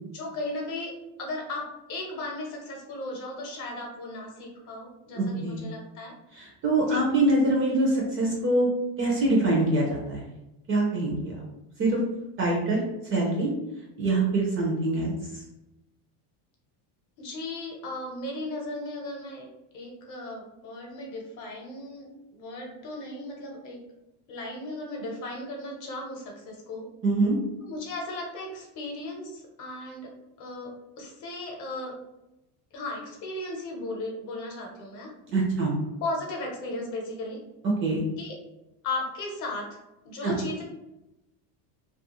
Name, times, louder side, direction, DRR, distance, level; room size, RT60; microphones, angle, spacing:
voice 1, 0.1-0.9 1.2-6.1 6.8-7.0 17.2-19.5 19.7-23.8 24.3-26.9 27.6-30.1 30.4-31.9 32.7-35.1 36.0-37.4 38.2-38.3 38.8-39.8 40.0-40.6, left 2 dB, 45° left, 0 dB, 0.8 m, -36 dB
voice 2, 5.2-5.6 6.4-8.7 9.0-10.2 10.7-11.4 11.8-12.0 12.4-12.8 13.1-13.5 14.0-15.1 27.0-27.3 35.3-35.7 37.8-38.0 40.2-40.3, right 2 dB, 30° right, -2 dB, 0.4 m, -24 dB
2.3 x 2.3 x 2.9 m, 0.93 s
cardioid pair, 160°, 45 cm